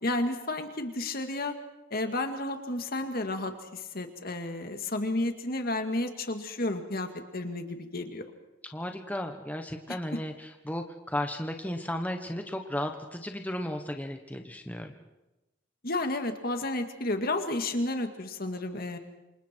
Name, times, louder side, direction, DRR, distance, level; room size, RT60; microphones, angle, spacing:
voice 1, 0.0-1.5 1.9-8.2 9.9-10.0 15.8-19.0, left 2 dB, 50° left, 6 dB, 2.1 m, -32 dB
voice 2, 8.7-14.9, left 1 dB, 10° left, 4 dB, 1.2 m, -34 dB
28.0 x 26.5 x 4.6 m, 1.0 s
head